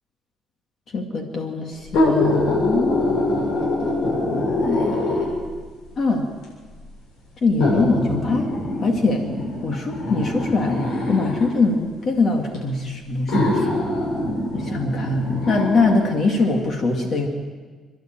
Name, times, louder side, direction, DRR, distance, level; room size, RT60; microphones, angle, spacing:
voice 1, 0.9-4.1 4.6-5.1 6.0-6.3 7.4-8.5 8.8-9.3 9.6-10.8 11.1-13.7 14.5-17.3, left 3 dB, 40° left, 3 dB, 2.1 m, -23 dB
sound 1, 1.8-5.5 6.4-6.5 7.6-11.5 12.5-12.6 13.3-16.0 16.4-16.5, left 2 dB, 90° left, 7.7 m, -23 dB
28.0 x 11.5 x 9.0 m, 1.4 s
cardioid pair, 150°, 0 cm